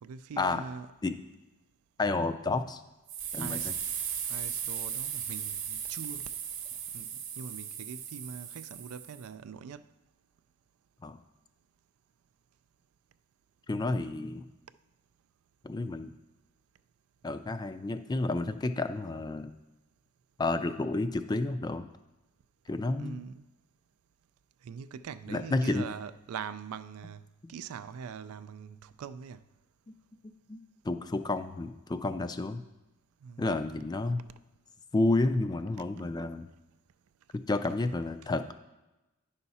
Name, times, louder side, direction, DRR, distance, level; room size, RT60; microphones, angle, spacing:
voice 1, 0.0-0.9 3.4-3.7 4.3-6.2 6.7-9.9 23.0-23.5 24.6-29.4 33.2-33.6, right 6 dB, 85° right, 0.4 m, -43 dB
voice 2, 2.0-2.8 3.3-3.7 11.0-11.2 13.7-14.4 15.6-16.1 17.2-19.6 20.4-21.8 22.7-23.3 25.3-25.9 27.4-27.5 30.5-32.6 33.4-34.2 34.9-36.5 37.5-38.5, left 2 dB, 20° left, 0.3 m, -30 dB
sound 1, 3.1-9.3, right 9 dB, 60° right, 0.9 m, -37 dB
9.8 x 5.7 x 4.1 m
head